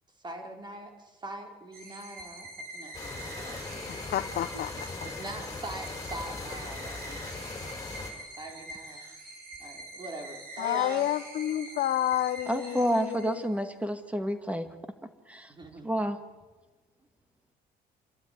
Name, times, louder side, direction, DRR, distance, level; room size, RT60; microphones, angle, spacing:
voice 1, 0.2-4.2 5.0-7.8 8.3-9.0 9.6-11.1 15.5-15.9, right 1 dB, 25° right, 3 dB, 4.5 m, -43 dB
sound 1, 1.7-13.6, right 2 dB, 60° right, 6.1 m, -45 dB
sound 2, 2.9-8.1, left 3 dB, 20° left, 4.5 m, -39 dB
voice 2, 3.9-4.7 10.6-13.4, left 12 dB, 60° left, 8 dB, 0.9 m, -30 dB
voice 3, 12.5-14.7 15.3-15.5 15.8-16.2, equal, 10° right, 8 dB, 2.1 m, -29 dB
28.5 x 12.5 x 9.8 m, 1.3 s
cardioid pair, 110°, 17 cm